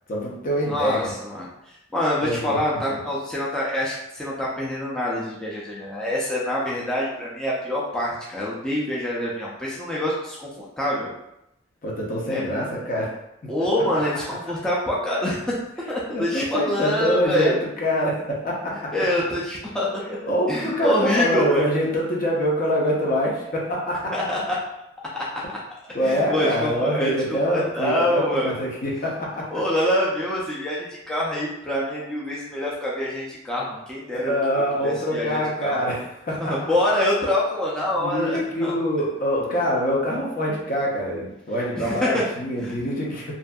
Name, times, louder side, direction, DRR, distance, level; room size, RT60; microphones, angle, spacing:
voice 1, 0.1-1.1 2.2-2.6 2.9-3.0 11.8-13.1 16.1-18.9 20.3-24.1 25.9-29.5 34.1-36.6 38.0-43.3, equal, 50° left, -3 dB, 0.7 m, -25 dB
voice 2, 0.7-1.5 1.9-11.1 12.3-12.6 13.5-15.6 15.9-17.6 18.9-20.2 20.5-21.6 24.1-24.6 26.0-28.5 29.5-34.3 34.8-35.8 36.4-38.7 41.8-42.2 42.6-42.7, left 1 dB, 5° left, -7 dB, 0.4 m, -25 dB
2.6 x 2.5 x 2.2 m, 0.84 s
head